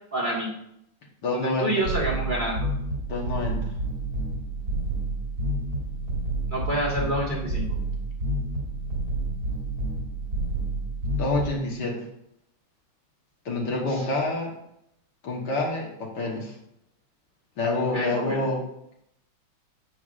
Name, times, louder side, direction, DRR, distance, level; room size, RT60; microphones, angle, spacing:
voice 1, 0.1-0.5 1.3-2.7 6.5-7.7 13.9-14.1 17.9-18.4, right 1 dB, 25° right, -5 dB, 1.7 m, -28 dB
voice 2, 1.2-1.7 3.1-3.7 11.1-12.1 13.5-14.5 15.2-16.6 17.6-18.6, left 2 dB, 60° left, -1 dB, 1.8 m, -27 dB
sound 1, 1.8-11.5, right 2 dB, 45° right, 3.2 m, -29 dB
9.5 x 8.0 x 2.5 m, 0.77 s
omnidirectional pair, 2.2 m